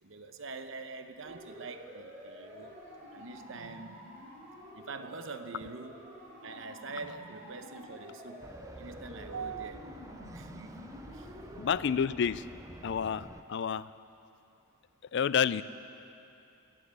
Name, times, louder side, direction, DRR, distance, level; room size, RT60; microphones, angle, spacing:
voice 1, 0.0-2.8 3.1-4.0 4.7-11.3, right 4 dB, 60° right, 8 dB, 0.8 m, -44 dB
Siren, 1.2-11.6, equal, 40° right, 4.1 m, -49 dB
sound 1, 8.4-13.4, right 2 dB, 15° right, 0.4 m, -49 dB
voice 2, 11.6-12.4 12.8-13.9 15.1-15.6, left 7 dB, 55° left, 16 dB, 0.3 m, -29 dB
21.5 x 7.5 x 8.2 m, 2.7 s
head